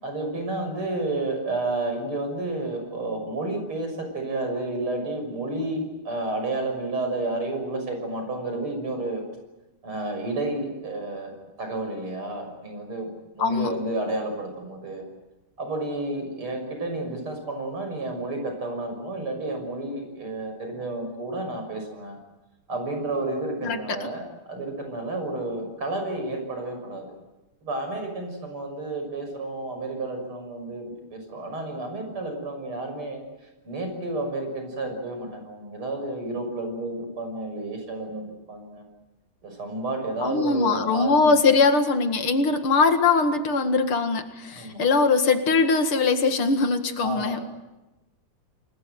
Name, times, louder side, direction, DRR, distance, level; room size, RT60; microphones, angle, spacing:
voice 1, 0.0-9.2 9.8-15.1 15.6-22.2 22.7-24.2 24.5-27.1 27.6-33.2 33.6-38.8 39.4-41.4 44.5-44.8 47.0-47.4, right 2 dB, 80° right, 4 dB, 7.2 m, -31 dB
voice 2, 13.4-13.7 23.6-24.1 40.2-47.4, left 4 dB, 80° left, 7 dB, 2.9 m, -21 dB
29.0 x 21.0 x 8.0 m, 1.0 s
omnidirectional pair, 2.4 m